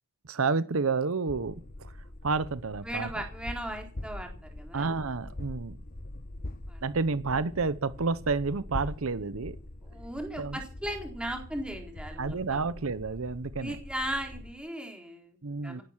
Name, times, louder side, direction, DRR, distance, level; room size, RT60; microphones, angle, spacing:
voice 1, 0.2-1.9 2.2-3.1 4.7-5.8 6.8-9.6 10.4-10.6 12.2-13.8 15.4-15.8, right 4 dB, 75° right, 0.8 m, -30 dB
sound 1, 1.3-14.6, left 1 dB, 40° left, 1.1 m, -43 dB
voice 2, 2.8-4.9 6.7-6.8 9.8-12.6 13.6-15.4 15.6-15.8, right 1 dB, 5° right, 3.9 m, -37 dB
17.5 x 11.0 x 7.3 m
head